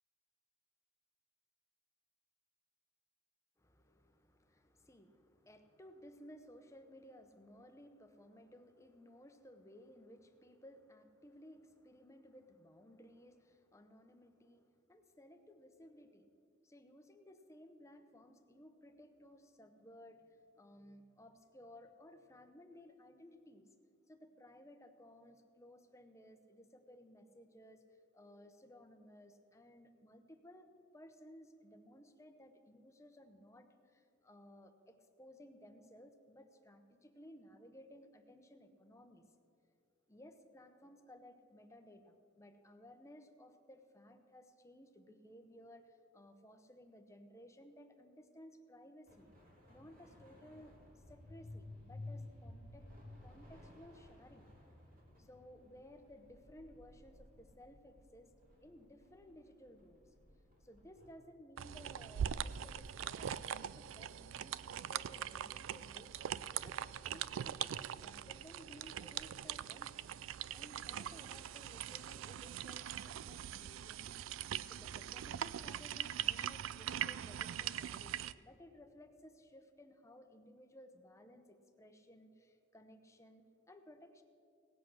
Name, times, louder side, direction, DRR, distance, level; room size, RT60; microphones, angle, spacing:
voice 1, 3.6-16.3 16.6-23.7 24.1-30.7 30.9-39.2 40.1-49.3 49.7-52.9 53.2-54.5 55.2-58.3 58.6-60.1 60.6-66.1 66.6-70.0 70.5-74.2 74.6-84.2, left 1 dB, 15° left, 6 dB, 0.8 m, -59 dB
sound 1, 49.1-61.1, left 2 dB, 45° right, 2.7 m, -55 dB
sound 2, 61.6-78.3, right 10 dB, 90° right, 0.4 m, -42 dB
18.0 x 8.2 x 6.3 m, 2.4 s
head